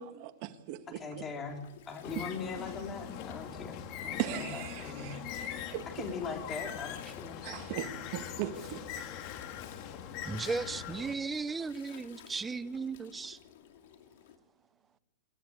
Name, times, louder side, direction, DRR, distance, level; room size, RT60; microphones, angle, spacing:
voice 1, 0.1-1.2 2.2-2.3 4.2-5.2 5.7-5.9 7.4-8.8, right 13 dB, 40° right, 1.9 m, -38 dB
voice 2, 0.9-1.6 1.9-5.2 5.9-7.4, left 4 dB, 20° left, 3.8 m, -41 dB
Gurgling, 1.1-14.4, left 9 dB, 65° left, 2.5 m, -55 dB
Bird, 2.0-11.1, left 9 dB, 40° left, 2.4 m, -42 dB
voice 3, 10.2-13.4, right 4 dB, 10° right, 0.8 m, -36 dB
27.5 x 13.5 x 9.0 m
supercardioid pair, 150°, 0 cm